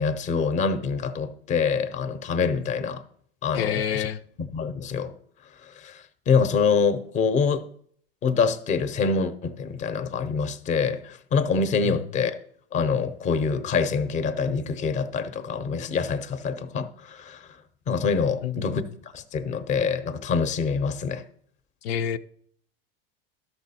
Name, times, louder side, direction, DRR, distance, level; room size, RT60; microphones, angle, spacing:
voice 1, 0.0-3.0 3.4-4.1 4.5-5.1 5.8-7.6 8.2-12.4 12.7-17.5 17.9-18.8 19.1-21.2, left 5 dB, 25° left, 0.7 m, -25 dB
voice 2, 3.5-4.2 11.8-12.0 18.4-18.9 21.8-22.2, left 8 dB, 85° left, 0.6 m, -28 dB
12.0 x 6.2 x 4.2 m
supercardioid pair, 130°, 30 cm